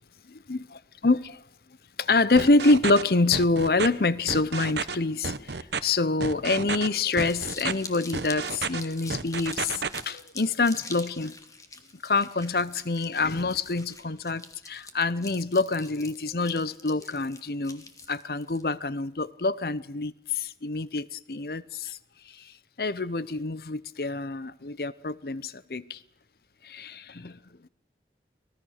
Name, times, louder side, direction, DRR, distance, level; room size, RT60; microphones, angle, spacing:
voice 1, 0.3-1.4 2.0-5.5 5.8-11.3 12.0-17.8 18.1-22.0 22.8-26.0 26.6-27.4, left 3 dB, 60° left, 0.8 m, -26 dB
sound 1, 2.4-3.0 3.3-3.9 4.3-4.9 5.2-5.8 6.2-6.9 7.2-7.7 8.1-8.8 9.1-10.0, right 5 dB, 75° right, 1.0 m, -31 dB
Crumpling crinkling, 6.9-18.6, left 4 dB, 20° left, 1.8 m, -45 dB
24.5 x 19.0 x 6.6 m
head